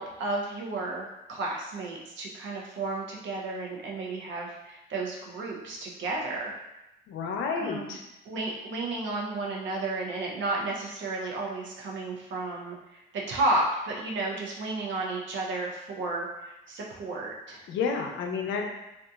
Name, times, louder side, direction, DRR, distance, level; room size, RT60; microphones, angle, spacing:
voice 1, 0.0-6.5 7.6-8.0 8.3-17.6, right 2 dB, 70° right, -2 dB, 0.7 m, -32 dB
voice 2, 7.1-8.0 17.7-18.7, left 5 dB, 80° left, 2 dB, 0.5 m, -30 dB
2.8 x 2.3 x 2.3 m, 0.93 s
cardioid pair, 90°, 20 cm